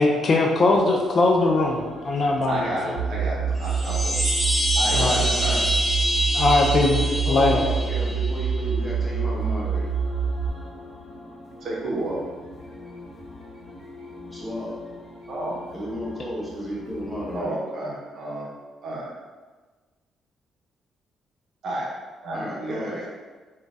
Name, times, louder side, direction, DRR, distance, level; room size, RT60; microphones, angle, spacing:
voice 1, 0.0-3.0 4.9-5.2 6.3-7.6, left 2 dB, 45° left, 1 dB, 0.3 m, -21 dB
sound 1, 0.5-17.4, left 2 dB, 30° left, 0.8 m, -43 dB
voice 2, 2.5-4.3 4.7-5.6 11.6-12.2 15.3-15.6 17.3-18.5 18.8-19.1 21.6-21.9 22.2-23.0, right 2 dB, 65° right, -5 dB, 0.7 m, -31 dB
sound 2, 3.0-10.5, right 6 dB, 45° right, 1.1 m, -26 dB
sound 3, 3.6-8.6, equal, 20° right, 0.5 m, -26 dB
voice 3, 5.1-5.6 6.9-9.9 14.3-14.8 15.7-17.6 22.3-23.0, equal, ahead, -6 dB, 0.9 m, -33 dB
2.5 x 2.2 x 3.2 m, 1.3 s
cardioid pair, 90°, 0 cm